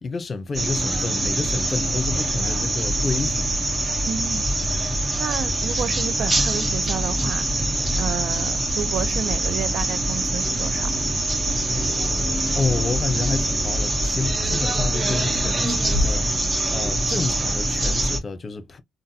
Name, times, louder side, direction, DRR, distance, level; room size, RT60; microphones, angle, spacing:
voice 1, 0.0-3.5 12.5-18.8, left 4 dB, 40° left, 0.9 m, -29 dB
sound 1, 0.5-18.2, right 1 dB, 30° right, 1.1 m, -24 dB
voice 2, 4.0-4.4 5.2-7.5 8.0-10.9, right 9 dB, 70° right, 0.5 m, -31 dB
3.7 x 2.1 x 2.8 m
hypercardioid pair, 55°, 0 cm